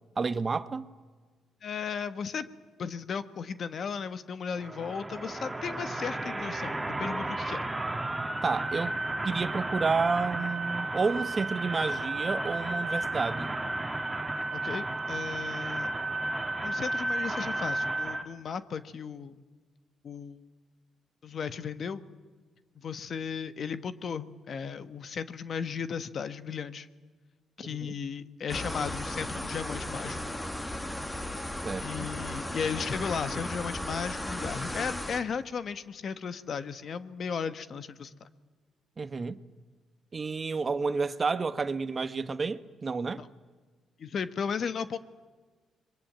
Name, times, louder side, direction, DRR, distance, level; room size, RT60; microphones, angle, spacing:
voice 1, 0.2-0.9 8.4-9.0 9.2-13.5 27.6-27.9 31.6-32.1 39.0-39.4 40.1-43.2, right 4 dB, 35° right, 1.2 m, -30 dB
voice 2, 1.6-2.5 2.8-7.6 14.5-15.9 16.6-19.4 20.0-20.4 21.2-22.0 22.7-26.9 27.6-30.2 31.8-38.3 43.2-43.3 44.0-45.0, left 6 dB, 55° left, 1.3 m, -35 dB
sound 1, 4.5-18.2, right 2 dB, 10° right, 2.4 m, -33 dB
sound 2, 28.5-35.2, left 1 dB, 15° left, 2.3 m, -36 dB
26.0 x 22.5 x 9.1 m
cardioid pair, 90°, 0 cm